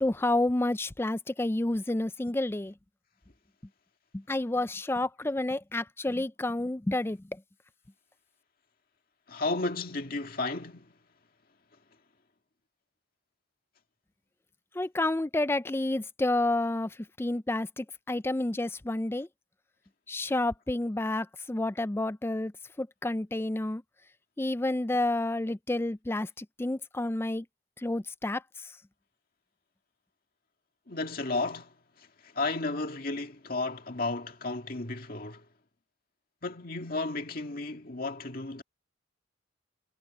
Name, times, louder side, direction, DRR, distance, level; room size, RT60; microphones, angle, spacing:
voice 1, 0.0-2.7 4.1-7.2 14.7-19.3 20.1-22.5 22.8-23.8 24.4-27.5 27.8-28.7, left 2 dB, 10° left, 0.4 m, -30 dB
voice 2, 9.3-10.9 30.9-35.4 36.4-38.6, left 3 dB, 45° left, 2.1 m, -33 dB
head